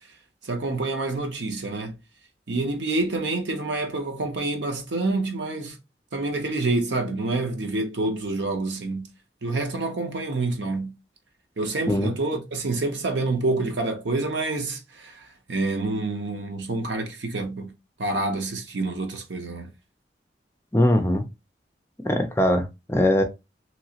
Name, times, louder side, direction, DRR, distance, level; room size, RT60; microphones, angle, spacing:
voice 1, 0.4-2.0 2.5-5.8 6.1-9.0 9.4-10.9 11.6-17.7 18.0-19.7, right 2 dB, 90° right, 0.8 m, -27 dB
voice 2, 20.7-21.2 22.0-23.2, left 1 dB, 15° left, 0.5 m, -21 dB
3.0 x 2.9 x 2.8 m
head